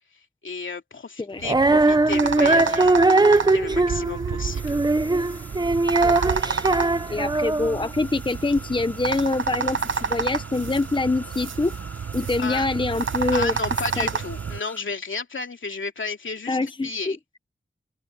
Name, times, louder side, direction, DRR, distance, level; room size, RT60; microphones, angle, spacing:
voice 1, 0.4-4.8 12.4-12.7 13.3-17.2, left 4 dB, 80° left, 2.6 m, -33 dB
Female singing, 1.4-7.9, right 2 dB, 20° right, 0.7 m, -20 dB
sound 1, 1.4-14.6, right 6 dB, 80° right, 0.9 m, -30 dB
sound 2, 4.5-14.8, left 1 dB, 10° left, 3.8 m, -45 dB
voice 2, 6.0-6.6 7.1-11.8 12.1-13.5 14.0-14.1 16.5-17.2, left 3 dB, 25° left, 0.8 m, -25 dB
open air
wide cardioid pair, 90°, 20 cm